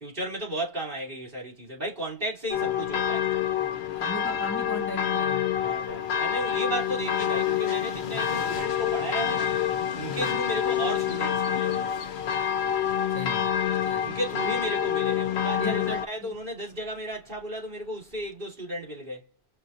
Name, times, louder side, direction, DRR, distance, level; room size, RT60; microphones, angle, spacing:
voice 1, 0.0-3.3 5.5-9.5 9.9-11.9 14.0-19.3, right 1 dB, 60° right, 3.1 m, -34 dB
Train, 2.4-18.5, left 5 dB, 60° left, 0.8 m, -45 dB
sound 1, 2.5-16.1, left 9 dB, 85° left, 0.9 m, -27 dB
voice 2, 3.8-5.5 10.1-10.4 13.1-13.6 13.8-14.2 15.6-16.0, left 1 dB, 15° left, 0.5 m, -37 dB
6.1 x 2.8 x 2.5 m
omnidirectional pair, 1.1 m